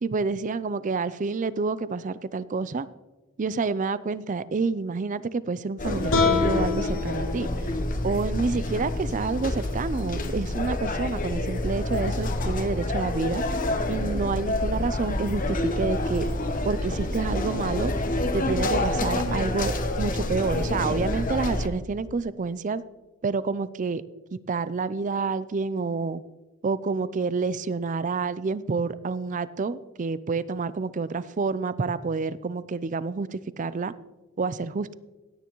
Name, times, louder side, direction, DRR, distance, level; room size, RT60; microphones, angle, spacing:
voice 1, 0.0-2.9 3.4-7.5 8.0-13.4 13.9-16.3 16.6-17.9 18.3-22.8 23.2-24.0 24.3-26.2 26.6-33.9 34.4-34.9, right 4 dB, 35° right, 16 dB, 0.4 m, -28 dB
sound 1, 5.8-21.7, left 1 dB, 40° left, 1.0 m, -28 dB
sound 2, 6.1-9.3, left 5 dB, 80° left, 3.6 m, -28 dB
16.5 x 9.5 x 3.0 m, 1.2 s
head